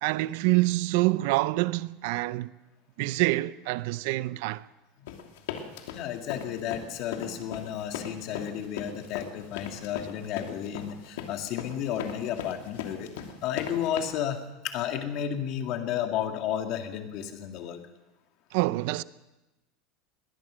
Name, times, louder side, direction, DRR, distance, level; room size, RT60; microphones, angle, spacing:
voice 1, 0.0-2.5 3.0-4.6 18.5-19.0, right 20 dB, 55° right, 0.6 m, -26 dB
sound 1, 5.1-14.0, left 9 dB, 90° left, 2.8 m, -37 dB
voice 2, 5.9-13.2 13.4-14.4 14.6-17.8, left 9 dB, 40° left, 2.1 m, -32 dB
21.5 x 19.0 x 6.3 m
supercardioid pair, 180°, 0 cm